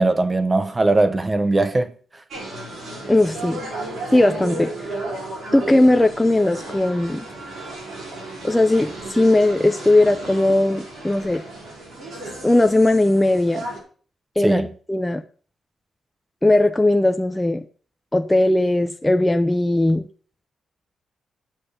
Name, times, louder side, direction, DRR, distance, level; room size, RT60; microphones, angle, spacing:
voice 1, 0.0-1.9 14.4-14.7, right 2 dB, 20° right, 0.9 m, -19 dB
sound 1, 2.3-13.8, right 2 dB, 65° right, 6.0 m, -34 dB
voice 2, 3.1-3.6 4.1-4.7 5.5-7.3 8.4-11.4 12.4-13.6 14.4-15.2 16.4-17.6 18.1-20.1, left 1 dB, 10° left, 0.5 m, -18 dB
8.9 x 7.5 x 6.6 m
wide cardioid pair, 155°, 0 cm